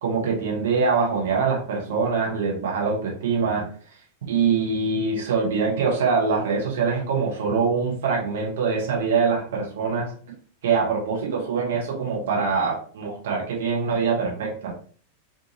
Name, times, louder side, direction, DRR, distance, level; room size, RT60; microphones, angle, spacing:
voice 1, 0.0-3.7 4.3-10.1 10.6-14.7, right 5 dB, 60° right, -2 dB, 0.9 m, -24 dB
2.8 x 2.5 x 2.7 m, 0.44 s
figure-of-eight pair, 90°, 0 cm